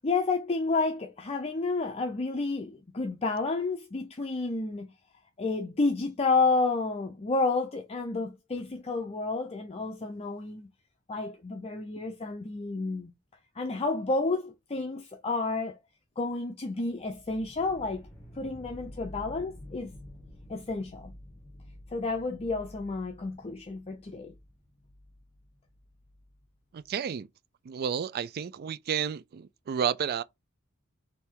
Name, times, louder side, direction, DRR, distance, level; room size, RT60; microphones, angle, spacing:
voice 1, 0.0-4.9 5.4-10.7 11.1-13.1 13.5-15.7 16.2-18.1 18.4-19.9 20.5-21.1 21.9-24.3, left 3 dB, 30° left, 0.5 m, -30 dB
sound 1, 17.1-26.9, left 1 dB, 10° left, 1.1 m, -50 dB
voice 2, 26.7-27.3 27.7-30.2, right 7 dB, 45° right, 0.3 m, -31 dB
3.4 x 2.7 x 4.5 m
head